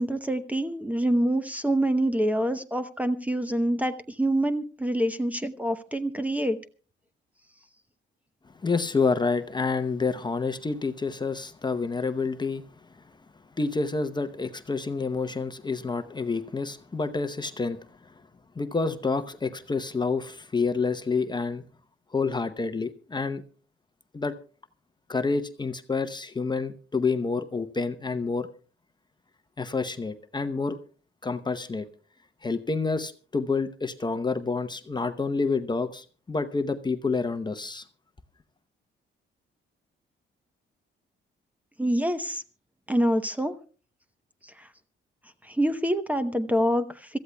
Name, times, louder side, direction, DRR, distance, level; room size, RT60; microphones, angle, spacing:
voice 1, 0.0-6.6 41.8-42.4 42.9-43.5 45.4-47.2, right 1 dB, 5° right, 0.9 m, -26 dB
voice 2, 8.6-12.7 13.6-18.1 18.6-21.6 22.1-23.4 24.1-24.3 25.1-28.5 29.6-30.8 31.2-31.9 32.4-37.8, left 4 dB, 20° left, 0.8 m, -28 dB
26.0 x 14.0 x 2.3 m
cardioid pair, 90°, 20 cm